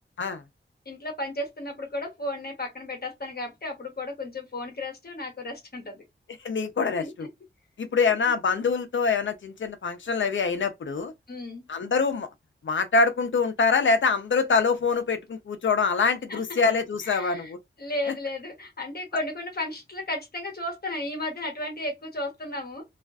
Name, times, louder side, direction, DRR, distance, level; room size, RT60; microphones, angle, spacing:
voice 1, 0.9-6.0 7.0-7.3 11.3-11.6 16.3-16.6 17.0-17.5 17.8-22.8, left 1 dB, 50° left, 0.9 m, -34 dB
voice 2, 6.4-7.3 7.8-11.1 11.7-12.3 12.6-17.6, left 4 dB, 75° left, 0.5 m, -24 dB
2.4 x 2.2 x 2.3 m
wide cardioid pair, 70°, 20 cm